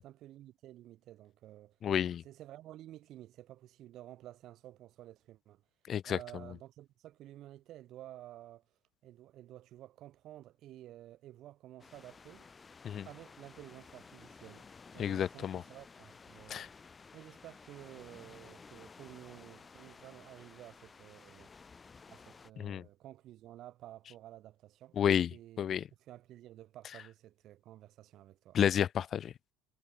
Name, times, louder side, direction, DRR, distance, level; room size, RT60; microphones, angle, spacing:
voice 1, 0.0-1.8 2.2-5.6 6.1-8.6 9.0-12.5 13.0-14.7 14.9-16.7 17.1-21.5 22.1-25.0 25.3-25.6 26.0-28.6, right 14 dB, 45° right, 7.6 m, -52 dB
voice 2, 1.8-2.2 5.9-6.2 12.8-13.0 15.0-15.6 16.5-16.7 22.6-22.8 25.0-25.3 25.6-25.8 28.5-29.3, left 9 dB, 35° left, 0.8 m, -30 dB
sound 1, 11.8-22.5, left 5 dB, 15° left, 4.6 m, -55 dB
cardioid pair, 145°, 0 cm